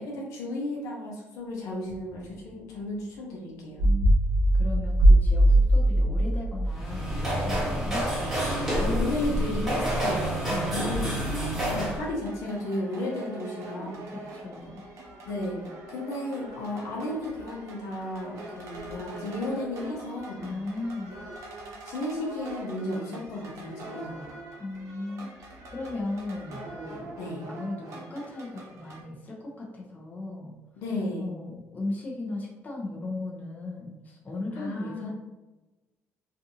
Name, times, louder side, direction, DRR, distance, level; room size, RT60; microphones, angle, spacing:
voice 1, 0.0-3.9 8.9-10.3 10.7-14.1 15.3-15.6 15.9-20.5 21.9-24.3 27.2-27.5 30.8-31.3 34.5-35.1, left 1 dB, 85° left, -3 dB, 0.7 m, -34 dB
sound 1, 1.9-2.1 3.8-7.8 8.2-8.4 9.2-9.4 10.9-12.0, right 1 dB, 40° right, 0.8 m, -21 dB
voice 2, 3.8-4.1 4.6-9.3 10.5-10.8 14.1-14.8 20.4-21.1 24.6-25.3 25.7-27.2 27.5-30.5 31.2-35.1, left 2 dB, 30° left, -3 dB, 0.7 m, -37 dB
sound 2, 6.7-12.0, equal, 5° right, 1.2 m, -28 dB
sound 3, 11.0-29.0, right 2 dB, 70° right, 0.7 m, -43 dB
2.5 x 2.5 x 2.6 m, 1.1 s
cardioid pair, 100°, 5 cm